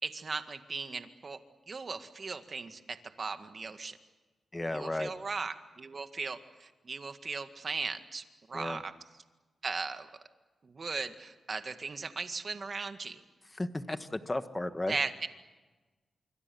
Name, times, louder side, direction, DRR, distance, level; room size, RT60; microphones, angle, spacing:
voice 1, 0.0-1.4 1.7-4.0 4.7-8.9 9.6-10.1 10.6-13.2 14.9-15.3, right 4 dB, 45° right, 8 dB, 1.9 m, -37 dB
voice 2, 4.5-5.1 8.5-8.8 13.5-15.0, left 1 dB, 15° left, 10 dB, 1.4 m, -34 dB
25.5 x 25.0 x 7.1 m, 1.2 s
cardioid pair, 100°, 0 cm